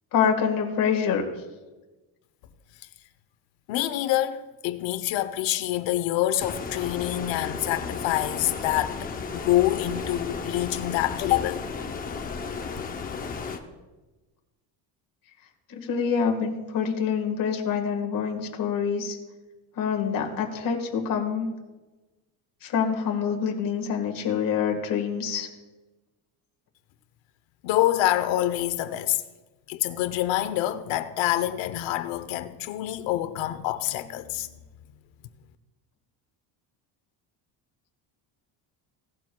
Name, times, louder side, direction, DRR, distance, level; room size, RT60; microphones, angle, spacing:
voice 1, 0.1-1.2 15.7-19.2 19.8-21.5 22.6-25.5, left 7 dB, 50° left, 1.7 m, -26 dB
voice 2, 3.7-11.6 27.6-29.2 29.7-34.5, left 14 dB, 85° left, 0.9 m, -26 dB
Stream, 6.4-13.6, left 5 dB, 20° left, 0.6 m, -34 dB
17.0 x 12.0 x 2.3 m
cardioid pair, 175°, 44 cm